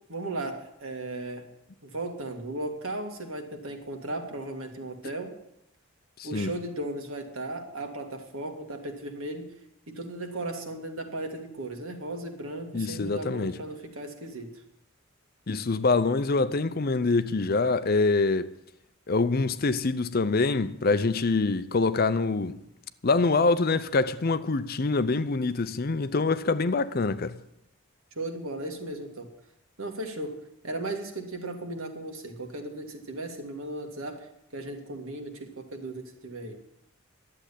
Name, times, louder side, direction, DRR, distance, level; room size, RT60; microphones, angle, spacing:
voice 1, 0.1-1.5 1.8-5.3 6.2-9.5 9.9-14.5 28.2-29.3 29.8-36.6, right 2 dB, 75° right, 2.1 m, -36 dB
voice 2, 12.7-13.5 15.5-18.5 19.1-22.6 23.0-27.4, left 3 dB, 45° left, 0.6 m, -25 dB
11.5 x 7.7 x 9.9 m
head